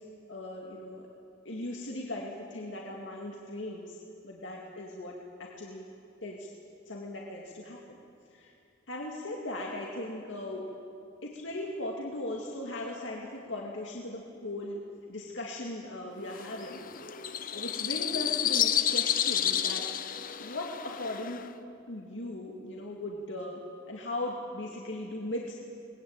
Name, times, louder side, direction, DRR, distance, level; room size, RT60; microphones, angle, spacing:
voice 1, 0.3-1.1 1.5-4.0 4.2-5.1 5.4-5.8 6.2-6.5 6.9-8.0 8.3-8.5 8.9-10.7 11.2-14.8 15.1-16.8 17.5-19.8 20.4-21.4 21.9-23.6 23.9-25.5, left 1 dB, 70° left, -1 dB, 2.3 m, -38 dB
sound 1, 16.3-21.5, left 10 dB, 45° left, 0.9 m, -30 dB
22.5 x 20.0 x 8.9 m, 2.5 s
head